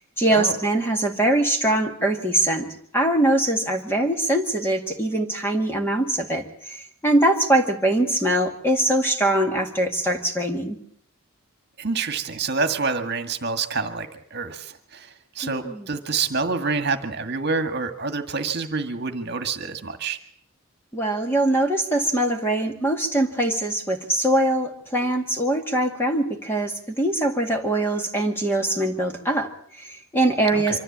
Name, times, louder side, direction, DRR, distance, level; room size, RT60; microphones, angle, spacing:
voice 1, 0.0-2.7 2.9-10.8 15.4-15.9 20.9-30.8, right 1 dB, 10° left, 3 dB, 2.0 m, -22 dB
voice 2, 11.8-20.2 30.5-30.8, right 4 dB, 45° right, 7 dB, 1.8 m, -27 dB
25.0 x 14.0 x 8.6 m, 0.64 s
head